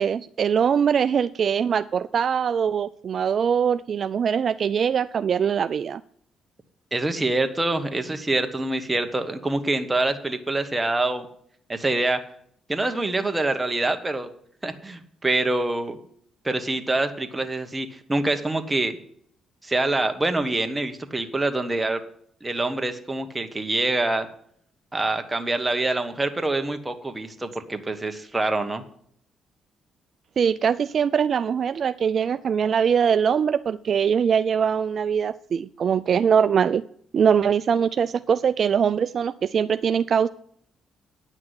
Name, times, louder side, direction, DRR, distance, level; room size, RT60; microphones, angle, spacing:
voice 1, 0.0-6.0 30.4-36.8 37.1-40.3, right 7 dB, 55° right, 13 dB, 0.3 m, -22 dB
voice 2, 6.9-11.3 11.7-12.2 12.7-14.3 14.6-16.0 16.4-19.0 19.6-22.0 22.4-24.3 24.9-28.8, right 2 dB, 15° right, 7 dB, 1.3 m, -25 dB
9.7 x 6.0 x 7.9 m, 0.64 s
cardioid pair, 90°, 0 cm